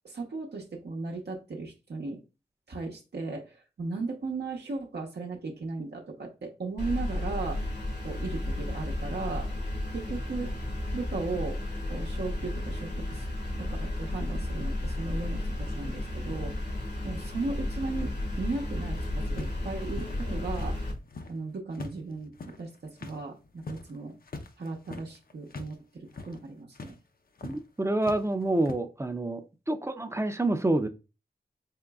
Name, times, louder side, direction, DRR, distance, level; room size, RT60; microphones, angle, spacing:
voice 1, 0.0-2.2 2.7-7.7 8.0-9.5 9.9-10.5 10.9-11.6 11.9-13.2 13.6-16.7 17.0-20.8 21.3-24.1 24.6-25.8 26.3-26.9, right 3 dB, 75° right, 0.8 m, -36 dB
sound 1, 6.8-20.9, left 1 dB, 80° left, 1.3 m, -33 dB
sound 2, 19.4-21.4 21.7-25.8 26.0-26.4 26.7-26.9 27.4-27.6 28.0-28.7, left 3 dB, 60° left, 0.6 m, -43 dB
voice 2, 27.4-30.9, right 2 dB, 15° right, 0.4 m, -28 dB
3.9 x 3.7 x 2.3 m
wide cardioid pair, 80°, 17 cm